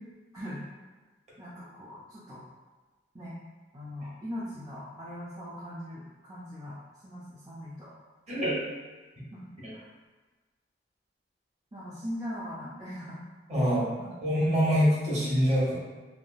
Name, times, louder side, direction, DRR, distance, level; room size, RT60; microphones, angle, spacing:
voice 1, 0.3-0.6 1.4-2.4 3.1-3.4 3.7-6.8 7.0-7.9 9.3-9.4 9.7-9.8 11.7-13.2 14.0-14.1, equal, 20° right, -9 dB, 0.4 m, -40 dB
voice 2, 13.5-13.9 14.2-15.7, equal, 40° right, -8 dB, 1.1 m, -24 dB
3.3 x 2.3 x 2.5 m, 1.3 s
head